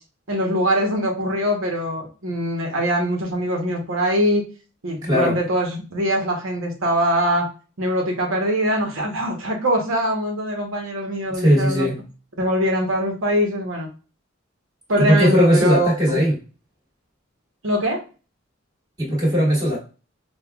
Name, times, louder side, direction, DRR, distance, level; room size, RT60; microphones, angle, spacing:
voice 1, 0.3-4.4 4.8-7.4 7.8-11.9 12.4-13.9 14.9-16.2 17.6-18.0, equal, 70° right, 1 dB, 1.0 m, -22 dB
voice 2, 5.0-5.4 11.3-12.0 15.0-16.3 19.0-19.8, equal, 20° right, -5 dB, 1.6 m, -18 dB
5.4 x 2.3 x 2.3 m, 0.35 s
head